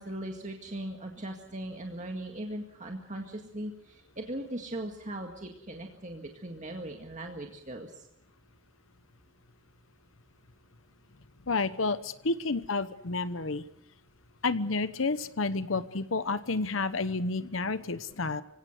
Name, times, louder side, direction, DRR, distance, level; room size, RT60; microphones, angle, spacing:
voice 1, 0.0-8.1, right 1 dB, 40° right, 2 dB, 2.0 m, -39 dB
voice 2, 11.5-13.6 14.4-18.4, left 3 dB, 90° left, 13 dB, 1.0 m, -30 dB
25.5 x 17.0 x 7.8 m, 0.79 s
head